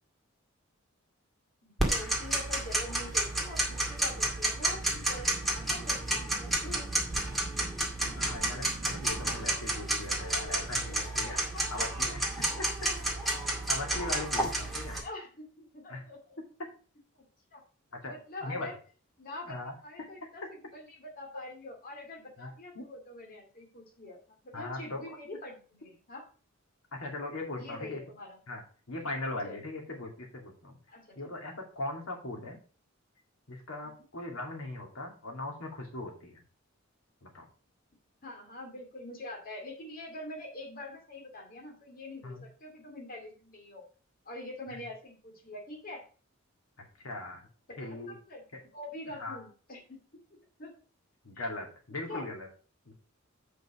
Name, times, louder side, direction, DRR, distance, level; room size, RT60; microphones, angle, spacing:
voice 1, 1.6-6.9 11.2-11.9 15.0-16.4 17.5-17.6 18.0-18.7 19.2-20.4 20.7-26.2 27.6-28.4 29.4-29.6 30.9-31.2 33.8-34.0 38.2-43.8 44.3-46.0 47.7-48.4 48.7-50.0 50.6-50.7 51.9-52.2, left 1 dB, 45° left, 1 dB, 2.3 m, -45 dB
Tick-tock, 1.8-15.0, right 1 dB, ahead, 2.1 m, -31 dB
voice 2, 8.1-11.4 11.7-12.7 13.7-15.0 15.9-16.0 16.6-16.7 17.9-18.2 18.4-18.7 19.5-20.1 22.4-22.5 22.7-22.9 24.5-25.2 27.0-28.0 28.5-30.8 31.2-32.6 33.5-36.4 37.2-37.5 42.2-42.4 47.0-47.5 47.8-48.2 48.5-48.6 49.2-49.4 51.2-52.5 52.9-53.0, left 2 dB, 80° left, 1 dB, 2.4 m, -39 dB
8.0 x 5.4 x 4.9 m, 0.38 s
head